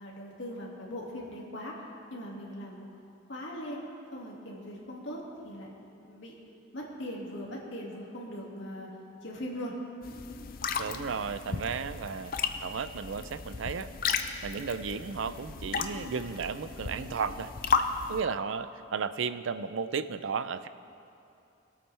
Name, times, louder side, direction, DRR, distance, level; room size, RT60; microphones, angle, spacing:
voice 1, 0.0-1.8 2.1-2.8 3.3-3.8 4.1-5.7 6.0-6.3 6.7-8.9 9.2-9.7 11.4-11.7, equal, 70° left, -3 dB, 2.2 m, -40 dB
sound 1, 10.0-18.2, left 5 dB, 45° left, 0.5 m, -34 dB
voice 2, 10.8-12.3 12.6-13.9 14.4-17.5 18.1-20.7, right 5 dB, 80° right, 13 dB, 0.4 m, -34 dB
21.5 x 8.8 x 3.4 m, 2.7 s
head